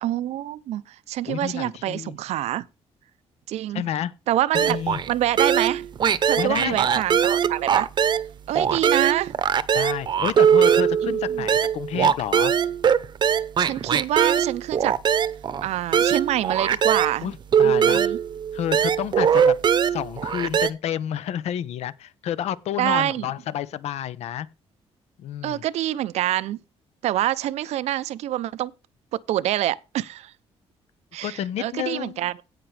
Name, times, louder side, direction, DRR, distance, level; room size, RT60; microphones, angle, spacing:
voice 1, 0.0-2.7 3.5-3.9 4.3-4.8 5.1-5.9 6.2-7.9 8.5-9.3 11.0-11.5 13.6-14.9 15.6-17.3 17.6-18.2 22.8-23.3 25.4-26.6 27.0-28.7 29.3-30.3 31.1-32.3, right 13 dB, 85° right, 0.6 m, -26 dB
voice 2, 1.3-2.2 3.7-4.1 4.5-5.0 6.4-6.9 9.7-12.5 17.2-17.3 17.6-18.0 18.5-19.5 19.8-24.5 25.2-25.6 31.2-32.3, left 10 dB, 75° left, 0.8 m, -30 dB
sound 1, 4.5-5.1 5.4-8.3 8.5-17.1 17.5-20.7, right 8 dB, 45° right, 0.8 m, -21 dB
17.0 x 5.9 x 3.3 m
cardioid pair, 140°, 11 cm